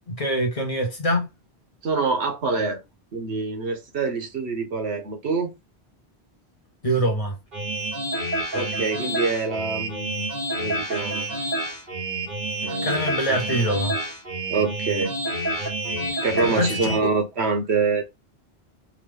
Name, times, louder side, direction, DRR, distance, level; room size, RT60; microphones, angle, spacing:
voice 1, 0.1-1.3 6.8-7.4 12.6-14.0 16.4-17.1, equal, 35° left, 1.0 m, -24 dB
voice 2, 1.8-2.8 3.1-5.5 8.5-10.3 10.6-11.2 12.6-13.1 14.5-15.1 16.2-18.0, right 4 dB, 75° right, 1.2 m, -25 dB
sound 1, 7.5-17.0, right 1 dB, 50° right, 1.6 m, -28 dB
3.7 x 2.3 x 3.3 m
omnidirectional pair, 1.1 m